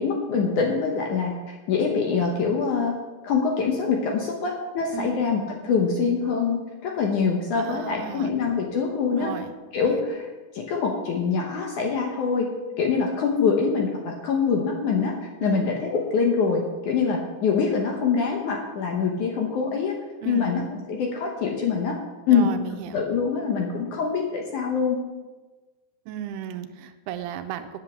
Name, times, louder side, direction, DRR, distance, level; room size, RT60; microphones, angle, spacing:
voice 1, 0.0-2.9 3.2-6.6 6.8-9.3 9.7-10.2 10.5-12.5 12.8-15.1 15.4-20.0 20.3-21.9 22.3-22.5 22.9-25.0, left 5 dB, 65° left, 1 dB, 2.0 m, -24 dB
voice 2, 7.5-8.3 9.2-9.5 9.9-10.0 15.4-15.7 20.2-20.5 22.3-23.1 26.1-27.8, right 9 dB, 85° right, 8 dB, 2.7 m, -34 dB
9.3 x 8.2 x 7.3 m, 1.2 s
omnidirectional pair, 4.7 m